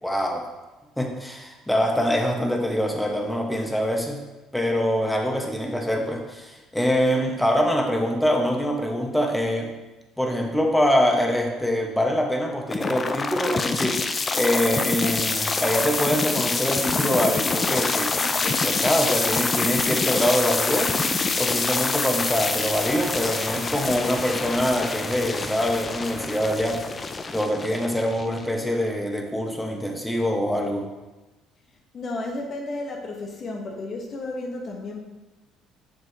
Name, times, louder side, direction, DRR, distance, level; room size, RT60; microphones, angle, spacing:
voice 1, 0.0-0.5 1.0-4.2 4.5-9.7 10.2-20.9 21.4-26.8 27.3-30.8, equal, 5° left, 2 dB, 1.2 m, -24 dB
sound 1, 12.7-28.7, left 4 dB, 30° left, 0.5 m, -26 dB
voice 2, 31.9-35.0, left 2 dB, 45° left, 0 dB, 1.0 m, -32 dB
7.7 x 6.3 x 2.8 m, 1.1 s
supercardioid pair, 85°, 0 cm